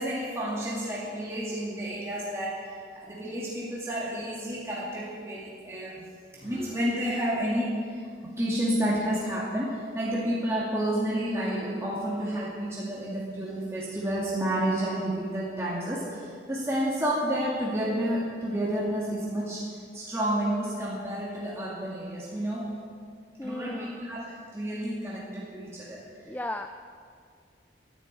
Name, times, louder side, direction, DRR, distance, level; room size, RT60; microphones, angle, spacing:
voice 1, 0.0-6.0 6.4-8.1 8.4-22.7 23.4-26.0, right 1 dB, 15° right, -6 dB, 2.2 m, -30 dB
sound 1, 6.3-8.0 8.3-10.6, right 1 dB, 45° left, 3.9 m, -49 dB
voice 2, 23.4-24.0 26.3-26.7, left 1 dB, 10° left, 7 dB, 0.3 m, -35 dB
11.5 x 11.0 x 8.6 m, 2.1 s
head